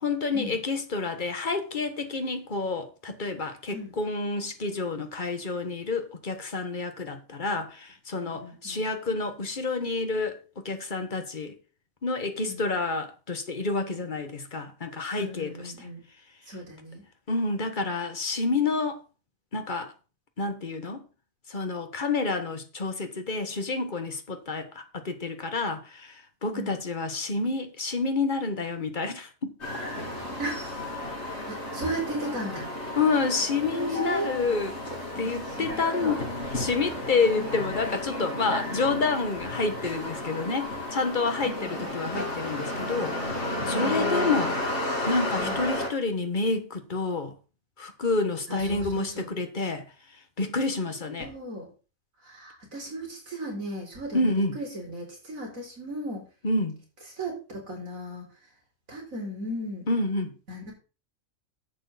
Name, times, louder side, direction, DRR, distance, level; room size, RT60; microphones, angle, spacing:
voice 1, 0.0-11.5 12.0-15.5 17.3-19.0 19.5-19.9 20.4-21.0 21.5-29.5 33.0-34.8 35.1-36.2 36.5-44.6 45.1-47.3 47.8-49.9 50.4-51.3 54.1-54.6 56.4-56.8 59.9-60.3, left 3 dB, 35° left, 1.5 m, -29 dB
voice 2, 8.2-8.8 12.5-12.6 15.2-16.0 16.5-17.0 26.5-26.8 30.4-32.7 33.7-34.4 35.1-36.2 37.3-37.6 41.4-41.9 45.4-45.6 48.5-49.3 51.2-51.7 52.2-56.2 57.2-58.3 58.9-59.9 60.5-60.7, right 1 dB, 80° right, 4.7 m, -36 dB
sound 1, 29.6-45.9, left 1 dB, 55° left, 3.5 m, -32 dB
10.5 x 8.0 x 4.1 m
omnidirectional pair, 1.4 m